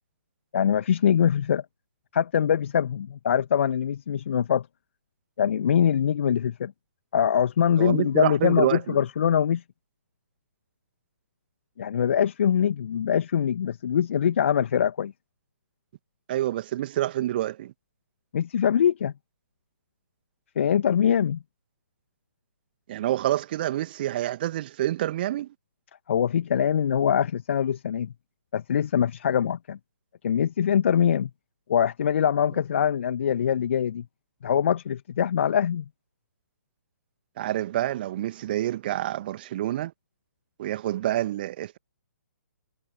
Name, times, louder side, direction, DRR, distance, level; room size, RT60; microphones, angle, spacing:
voice 1, 0.5-1.7 2.1-4.7 5.4-6.7 7.1-9.6 11.8-15.1 18.3-19.1 20.6-21.4 26.1-28.1 28.5-29.8 30.2-31.3 31.7-34.1 34.4-35.9, left 8 dB, 45° left, 2.0 m, -23 dB
voice 2, 7.8-9.0 16.3-17.7 22.9-25.5 37.4-39.9 40.6-41.8, right 13 dB, 35° right, 2.4 m, -27 dB
figure-of-eight pair, 130°, 9 cm